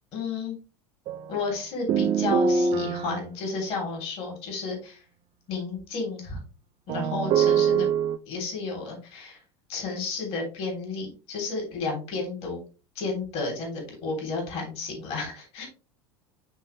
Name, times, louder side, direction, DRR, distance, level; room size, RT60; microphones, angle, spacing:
voice 1, 0.1-0.5 1.3-5.0 5.5-6.4 6.9-7.9 8.3-9.4 9.7-12.6 12.9-15.7, left 4 dB, 45° left, 0 dB, 3.3 m, -32 dB
sound 1, 1.1-1.3 1.9-3.2 6.9-8.2, right 6 dB, 40° right, 0.6 m, -23 dB
9.1 x 4.2 x 3.2 m, 0.34 s
figure-of-eight pair, 75°, 14 cm